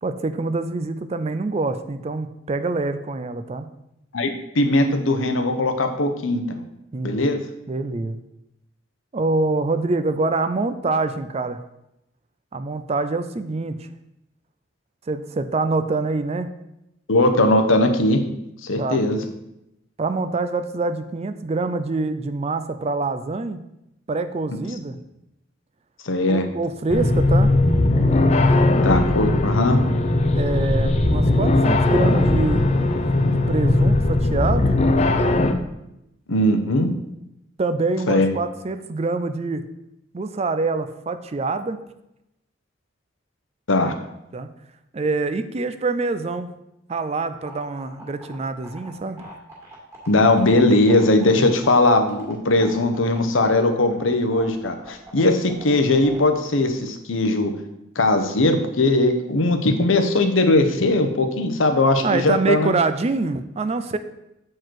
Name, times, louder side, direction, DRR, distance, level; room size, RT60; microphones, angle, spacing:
voice 1, 0.0-3.7 6.9-7.2 7.7-8.2 9.1-11.6 12.5-13.9 15.1-16.5 18.8-19.0 20.0-23.6 24.1-25.0 26.3-27.5 30.3-32.6 33.3-34.7 37.6-39.6 40.1-41.8 44.3-44.5 44.9-46.5 46.9-49.2 51.3-51.6 62.0-64.0, right 3 dB, 30° right, 11 dB, 0.4 m, -25 dB
voice 2, 4.1-6.6 7.0-7.4 17.1-18.2 18.6-19.2 26.0-26.5 28.8-29.8 36.3-36.9 38.1-38.3 43.7-43.9 50.1-57.5 58.0-62.7, left 2 dB, 80° left, 7 dB, 0.9 m, -19 dB
sound 1, 26.9-35.5, left 2 dB, 35° left, 0.5 m, -18 dB
sound 2, 47.3-56.2, right 1 dB, 15° right, 2.1 m, -42 dB
7.7 x 4.6 x 4.6 m, 0.87 s
head